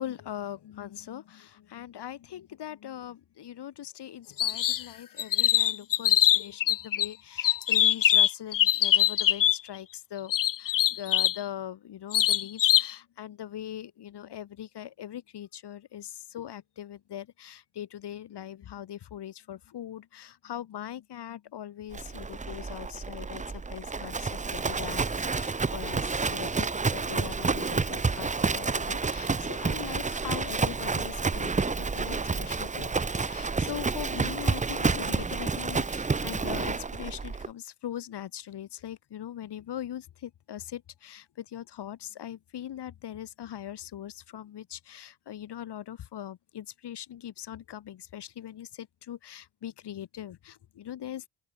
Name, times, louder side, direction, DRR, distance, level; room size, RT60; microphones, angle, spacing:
voice 1, 0.0-10.3 10.6-25.0 25.3-51.3, left 11 dB, 65° left, 3.0 m, -41 dB
sound 1, 4.4-4.8 5.2-7.1 7.4-9.6 10.3-11.4 12.1-12.9, left 12 dB, 50° left, 0.7 m, -23 dB
Livestock farm animals working animals, 21.9-37.5, right 4 dB, 15° right, 0.7 m, -29 dB
open air
hypercardioid pair, 45°, 43 cm